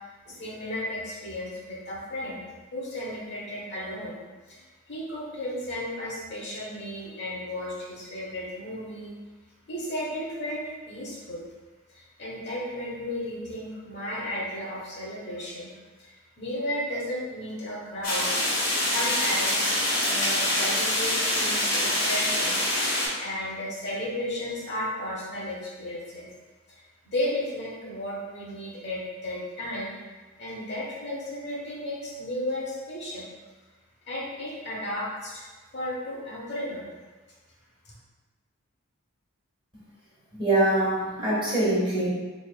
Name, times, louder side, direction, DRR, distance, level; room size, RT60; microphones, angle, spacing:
voice 1, 0.2-2.4 2.7-4.2 4.5-9.1 9.7-11.4 11.9-15.7 16.0-18.3 18.8-19.5 19.9-22.6 23.2-26.3 26.7-29.9 30.4-33.3 34.1-35.4 35.7-36.9 37.8-37.9, left 1 dB, 55° left, -6 dB, 0.9 m, -34 dB
sound 1, 18.0-23.1, left 1 dB, 75° left, 1.4 m, -25 dB
voice 2, 40.3-42.1, right 1 dB, 25° right, -8 dB, 1.3 m, -24 dB
3.7 x 3.3 x 2.2 m, 1.3 s
head